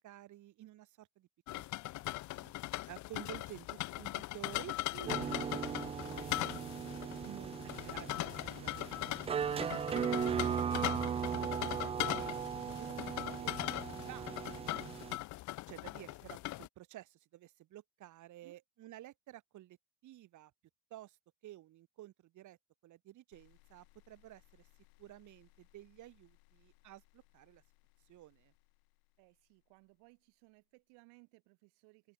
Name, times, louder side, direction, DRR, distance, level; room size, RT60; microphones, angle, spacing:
voice 1, 0.0-1.6 2.0-6.3 7.2-7.5 7.8-8.9 11.8-12.3 12.6-14.7 15.7-19.8 20.0-20.5 20.9-21.2 21.4-22.6 22.8-24.7 25.0-27.6 28.1-28.5, right 14 dB, 50° right, 5.2 m, -53 dB
sound 1, 1.5-16.7, left 18 dB, 50° left, 0.8 m, -40 dB
sound 2, 5.1-15.2, right 7 dB, 15° right, 0.3 m, -38 dB
voice 2, 6.9-7.4 18.4-18.6 29.2-32.1, right 31 dB, 90° right, 3.1 m, -63 dB
sound 3, 23.3-30.4, left 30 dB, 90° left, 3.4 m, -69 dB
open air
cardioid pair, 160°, 38 cm